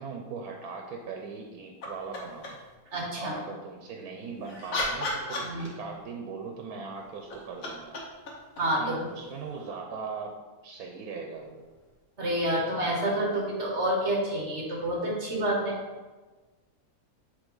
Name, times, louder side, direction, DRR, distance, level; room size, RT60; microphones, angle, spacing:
voice 1, 0.0-2.6 3.2-8.0 8.6-10.3 10.6-11.6, right 5 dB, 85° right, 1 dB, 1.2 m, -39 dB
sound 1, 1.8-2.7 4.2-6.1 7.1-9.7 11.8-11.9, left 2 dB, 65° left, 1.5 m, -36 dB
voice 2, 2.9-3.3 5.4-5.7 8.6-9.0 12.2-15.8, right 1 dB, 50° right, -2 dB, 1.5 m, -28 dB
8.2 x 3.3 x 3.8 m, 1.3 s
omnidirectional pair, 1.5 m